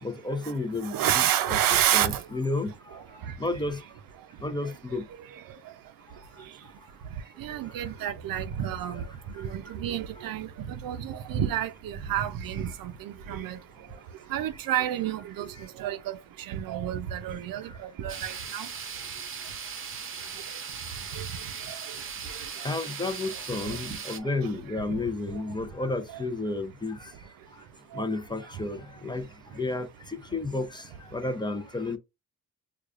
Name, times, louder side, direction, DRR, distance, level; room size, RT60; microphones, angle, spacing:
voice 1, 0.0-1.6 1.9-3.8 4.4-5.1 9.3-9.5 10.2-10.3 15.5-15.7 17.7-17.8 22.6-27.1 27.5-27.6 27.9-29.3 29.5-32.0, left 2 dB, 15° left, 0.5 m, -32 dB
voice 2, 0.8-2.2 3.2-3.3 4.6-4.7 5.3-5.6 7.4-13.6 14.3-18.7 21.1-21.8 22.3-22.8 23.6-24.0 24.4-24.5 24.9-25.4 26.1-26.2 27.9-28.1, right 11 dB, 85° right, 0.6 m, -30 dB
sound 1, 18.1-24.2, right 6 dB, 40° right, 0.7 m, -38 dB
4.8 x 2.3 x 2.4 m
cardioid pair, 105°, 33 cm